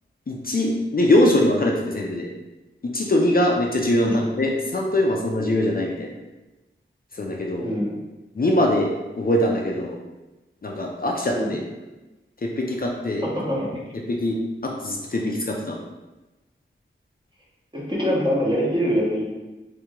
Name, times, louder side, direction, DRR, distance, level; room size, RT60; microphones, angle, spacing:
voice 1, 0.3-2.3 2.8-6.1 7.1-7.7 8.4-8.9 9.2-10.0 10.6-11.6 12.4-13.3 14.1-14.4 14.6-15.8, left 1 dB, 45° left, -1 dB, 0.5 m, -22 dB
voice 2, 13.2-13.7 17.7-19.3, equal, 20° right, -6 dB, 1.3 m, -24 dB
3.2 x 3.0 x 3.6 m, 1.1 s
wide cardioid pair, 55°, 21 cm